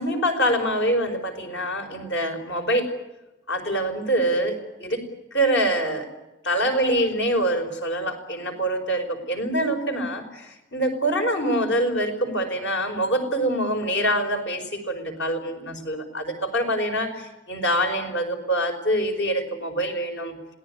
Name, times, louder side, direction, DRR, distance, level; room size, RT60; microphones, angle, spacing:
voice 1, 0.0-2.9 3.5-5.0 5.3-6.1 6.4-20.4, right 1 dB, 75° left, 5 dB, 5.4 m, -25 dB
27.0 x 18.5 x 9.7 m, 1.0 s
head